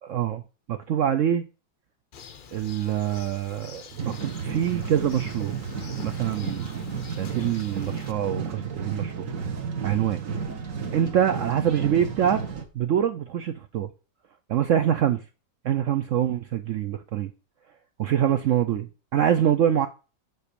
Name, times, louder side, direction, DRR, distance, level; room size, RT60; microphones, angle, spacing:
voice 1, 0.0-0.4 0.7-1.5 2.5-5.6 6.0-6.8 7.2-9.3 9.8-10.2 10.9-12.4 12.7-13.9 14.5-15.2 15.6-17.3 18.0-19.9, right 10 dB, 75° right, 0.7 m, -25 dB
Bird, 2.1-8.1, left 7 dB, 85° left, 0.4 m, -46 dB
sound 1, 4.0-12.6, right 6 dB, 50° right, 1.5 m, -32 dB
7.9 x 4.1 x 6.7 m
omnidirectional pair, 1.9 m